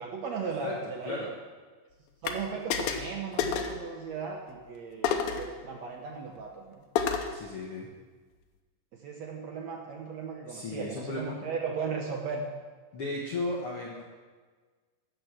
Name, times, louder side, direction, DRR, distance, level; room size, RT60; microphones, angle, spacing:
voice 1, 0.0-1.3 2.2-6.8 8.9-12.5, right 5 dB, 70° right, 1 dB, 1.6 m, -37 dB
voice 2, 0.6-1.3 7.3-7.9 10.5-11.4 12.9-14.0, left 2 dB, 60° left, -3 dB, 1.5 m, -35 dB
sound 1, 2.2-2.4 2.7-3.1 3.4-3.8 5.0-5.5 7.0-7.4, left 7 dB, 80° left, 2.6 m, -29 dB
13.0 x 7.9 x 6.0 m, 1.4 s
omnidirectional pair, 4.3 m